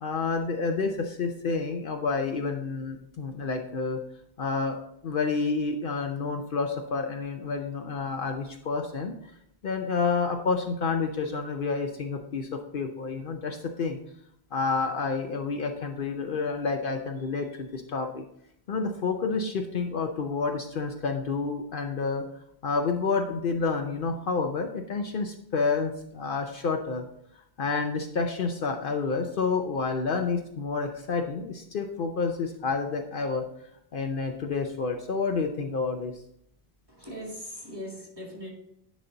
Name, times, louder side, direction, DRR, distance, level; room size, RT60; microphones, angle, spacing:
voice 1, 0.0-4.0 4.4-4.8 5.0-9.1 9.6-14.0 14.5-18.2 18.7-22.2 22.6-27.0 27.6-33.4 33.9-36.1, left 4 dB, 60° left, 4 dB, 0.8 m, -29 dB
voice 2, 36.9-38.5, equal, 25° right, -1 dB, 2.1 m, -40 dB
10.5 x 4.2 x 3.9 m, 0.75 s
omnidirectional pair, 1.0 m